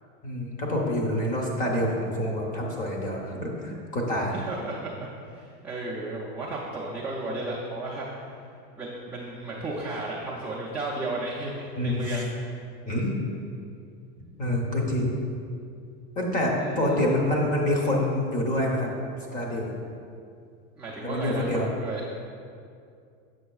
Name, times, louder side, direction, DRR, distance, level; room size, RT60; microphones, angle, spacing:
voice 1, 0.2-4.4 11.8-12.2 12.8-13.1 14.4-15.2 16.2-18.9 19.3-19.7 21.0-21.7, left 1 dB, 25° left, -1 dB, 0.8 m, -26 dB
voice 2, 4.3-8.2 8.8-12.3 16.6-17.0 20.8-22.0, right 2 dB, 5° right, -9 dB, 0.3 m, -34 dB
7.6 x 6.2 x 2.3 m, 2.4 s
supercardioid pair, 160°, 33 cm